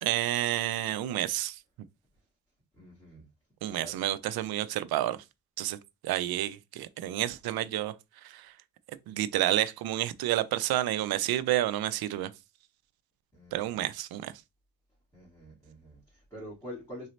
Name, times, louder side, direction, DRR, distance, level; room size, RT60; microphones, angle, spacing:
voice 1, 0.0-1.6 3.6-5.2 5.6-5.8 6.0-7.9 8.2-8.5 9.1-12.3 13.5-14.3, right 13 dB, 85° right, 0.5 m, -30 dB
voice 2, 2.7-3.3 3.7-4.0 13.3-13.8 15.1-17.1, equal, 10° left, 2.2 m, -46 dB
3.8 x 2.7 x 3.1 m
cardioid pair, 90°, 36 cm